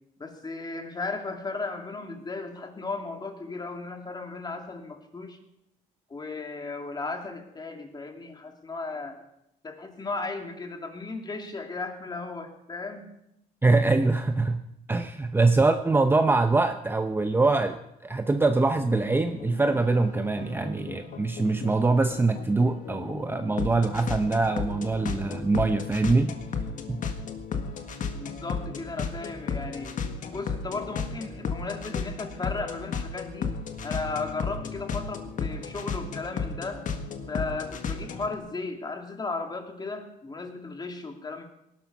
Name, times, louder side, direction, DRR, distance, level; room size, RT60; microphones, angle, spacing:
voice 1, 0.2-5.4 6.1-9.2 9.6-13.1 28.1-29.9 30.3-33.5 33.8-36.8 37.3-41.4, left 3 dB, 25° left, 4 dB, 2.5 m, -35 dB
voice 2, 13.6-14.6 14.9-26.3 26.9-27.0, right 3 dB, 15° right, 7 dB, 0.8 m, -23 dB
sound 1, 18.7-38.4, left 5 dB, 50° left, 1.7 m, -34 dB
18.5 x 12.0 x 5.4 m, 0.82 s
cardioid pair, 110°, 17 cm